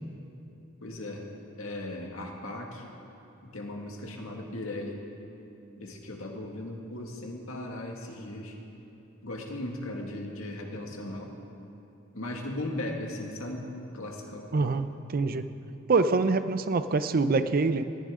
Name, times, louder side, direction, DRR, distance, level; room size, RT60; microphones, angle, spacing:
voice 1, 0.8-1.3 1.6-2.9 3.4-5.0 5.8-8.6 9.2-11.3 12.1-14.7, left 1 dB, 80° left, 0 dB, 2.0 m, -37 dB
voice 2, 14.5-15.5 15.9-17.8, right 3 dB, 45° right, 11 dB, 0.5 m, -25 dB
19.0 x 14.5 x 3.8 m, 3.0 s
head